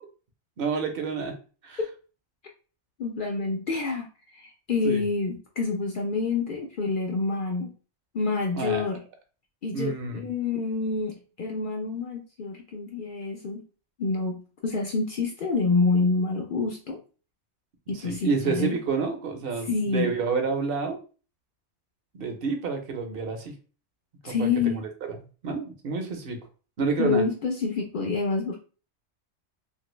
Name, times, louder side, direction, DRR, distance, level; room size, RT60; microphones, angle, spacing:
voice 1, 0.6-1.3 1.6-1.8 4.8-5.0 8.6-8.9 9.7-10.2 17.9-21.0 22.1-23.5 24.3-24.8 25.1-25.2 25.4-26.4 26.8-27.3, right 5 dB, 55° right, 5 dB, 0.8 m, -29 dB
voice 2, 3.0-7.7 8.1-9.0 9.6-13.6 14.0-17.0 17.9-18.8 19.7-20.1 24.2-24.8 27.0-28.6, left 4 dB, 65° left, 1 dB, 0.5 m, -27 dB
2.9 x 2.6 x 3.0 m, 0.36 s
omnidirectional pair, 1.4 m